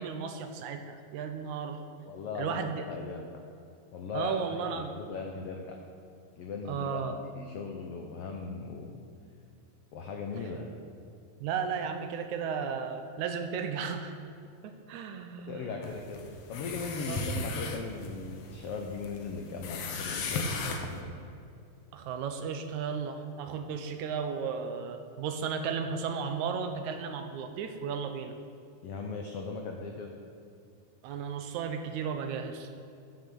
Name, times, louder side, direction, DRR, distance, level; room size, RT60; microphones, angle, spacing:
voice 1, 0.0-1.8 2.4-2.8 4.1-4.9 6.7-7.2 11.4-14.2 14.6-15.7 17.0-17.2 21.9-28.3 31.0-32.7, right 6 dB, 80° right, 7 dB, 1.9 m, -34 dB
voice 2, 2.0-3.3 3.9-5.8 6.4-7.0 7.4-9.0 9.9-10.7 15.5-21.1 28.8-30.2, left 4 dB, 85° left, 2 dB, 1.3 m, -38 dB
sound 1, 15.8-21.0, left 3 dB, 70° left, 1.7 m, -37 dB
10.0 x 6.1 x 6.9 m, 2.5 s
omnidirectional pair, 3.7 m